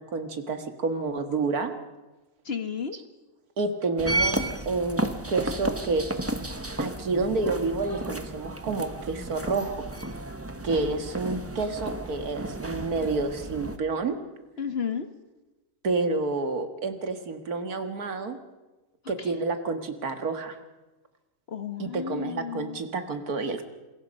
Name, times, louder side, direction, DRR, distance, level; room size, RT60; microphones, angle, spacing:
voice 1, 0.0-1.7 3.6-6.0 6.8-9.7 10.6-14.2 15.8-18.4 19.1-20.6 21.8-23.7, right 3 dB, 70° right, 7 dB, 2.2 m, -29 dB
voice 2, 2.4-3.0 14.6-15.1 19.0-19.3 21.5-22.8, left 7 dB, 45° left, 10 dB, 1.3 m, -33 dB
sound 1, 4.0-13.8, right 1 dB, 10° right, 0.9 m, -32 dB
27.5 x 21.5 x 5.4 m, 1.1 s
omnidirectional pair, 1.6 m